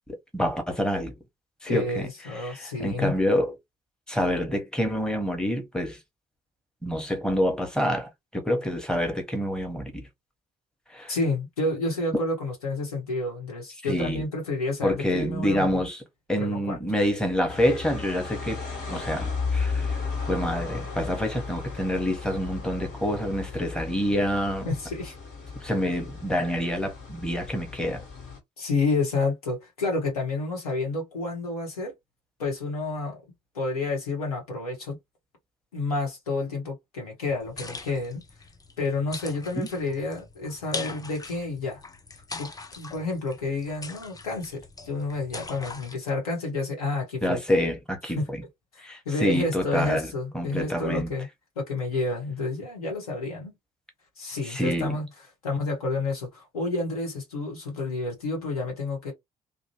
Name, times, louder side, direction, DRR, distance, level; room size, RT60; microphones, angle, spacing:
voice 1, 0.3-1.1 1.6-3.5 4.1-6.0 6.8-10.1 10.9-11.1 13.8-14.2 14.8-16.0 16.3-18.6 18.9-20.0 20.3-24.7 25.6-28.0 39.5-39.7 47.2-48.4 48.8-50.1 50.3-51.1 54.4-54.9, equal, 5° left, 1.0 m, -27 dB
voice 2, 1.7-3.2 11.1-15.8 16.4-16.8 24.6-25.1 28.6-31.9 32.4-33.2 33.5-35.0 35.7-38.2 38.8-41.8 42.4-42.5 42.8-47.4 48.1-48.3 48.7-51.3 51.6-53.5 54.2-55.1 55.4-59.1, left 2 dB, 80° left, 1.1 m, -29 dB
sound 1, 17.5-28.4, left 4 dB, 55° left, 1.5 m, -34 dB
sound 2, 37.3-46.0, left 3 dB, 20° left, 0.6 m, -41 dB
2.5 x 2.1 x 2.9 m
figure-of-eight pair, 45°, 19 cm